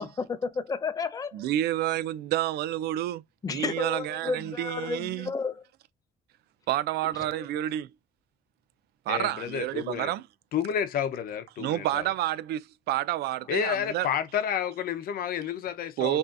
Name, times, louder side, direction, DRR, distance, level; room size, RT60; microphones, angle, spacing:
voice 1, 0.0-1.5 3.4-5.6 7.2-7.5, left 4 dB, 20° left, 0.6 m, -32 dB
voice 2, 1.3-3.2 3.5-5.3 6.7-7.9 9.1-10.3 11.6-14.1 16.0-16.2, right 13 dB, 70° right, 0.4 m, -29 dB
voice 3, 9.1-10.1 10.5-12.1 13.5-16.2, left 9 dB, 60° left, 0.8 m, -30 dB
5.4 x 2.7 x 2.5 m
cardioid pair, 110°, 17 cm